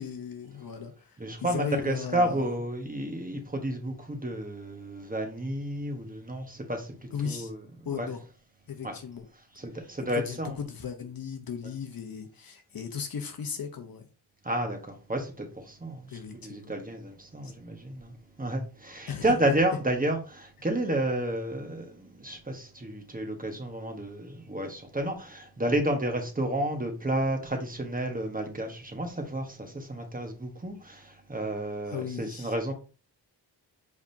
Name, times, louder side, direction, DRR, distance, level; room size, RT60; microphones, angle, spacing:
voice 1, 0.0-2.5 7.1-7.5 7.8-8.2 8.7-9.3 10.2-14.1 16.1-16.7 17.4-17.5 19.1-19.4 31.9-32.5, left 7 dB, 55° left, 0.9 m, -36 dB
voice 2, 1.2-7.6 7.9-8.1 8.8-8.9 9.5-10.6 14.4-32.7, right 1 dB, 20° right, 1.2 m, -31 dB
4.9 x 3.5 x 2.7 m
cardioid pair, 75°, 42 cm